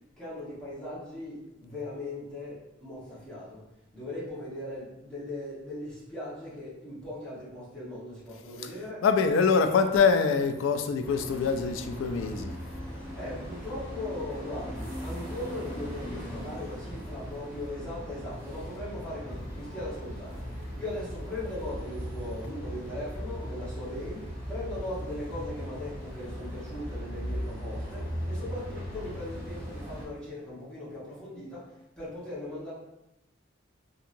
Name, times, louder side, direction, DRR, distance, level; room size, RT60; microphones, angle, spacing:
voice 1, 0.2-3.6 3.9-9.0 13.1-32.7, left 1 dB, 5° left, -10 dB, 1.1 m, -39 dB
voice 2, 9.0-12.6, left 5 dB, 70° left, 7 dB, 0.3 m, -24 dB
sound 1, 11.0-30.1, equal, 15° right, 0.9 m, -38 dB
2.8 x 2.7 x 2.5 m, 0.91 s
head